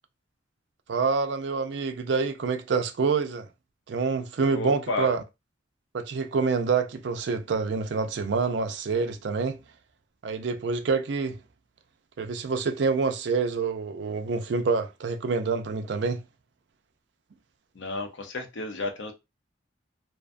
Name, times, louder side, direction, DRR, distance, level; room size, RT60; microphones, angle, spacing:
voice 1, 0.9-3.5 3.9-5.2 5.9-9.6 10.2-11.4 12.2-16.2, right 4 dB, 65° right, 0.4 m, -27 dB
voice 2, 4.5-5.1 17.7-19.1, left 2 dB, 80° left, 0.6 m, -32 dB
2.6 x 2.2 x 2.5 m
head